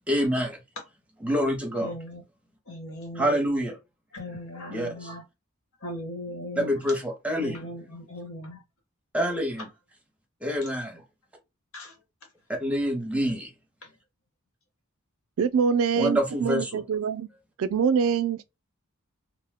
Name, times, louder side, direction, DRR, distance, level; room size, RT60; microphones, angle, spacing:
voice 1, 0.1-0.6 1.2-1.9 3.2-3.7 4.7-4.9 6.6-7.6 9.1-9.7 10.4-11.0 12.6-13.5 16.0-16.8, equal, 5° right, 0.6 m, -26 dB
voice 2, 1.8-2.2 2.7-3.4 4.1-5.2 5.8-6.8 7.4-8.6 10.6-10.7 11.7-12.0 13.8-13.9, left 1 dB, 70° left, 1.3 m, -38 dB
voice 3, 15.4-17.3 17.6-18.4, right 6 dB, 65° right, 0.3 m, -24 dB
2.5 x 2.1 x 3.4 m
head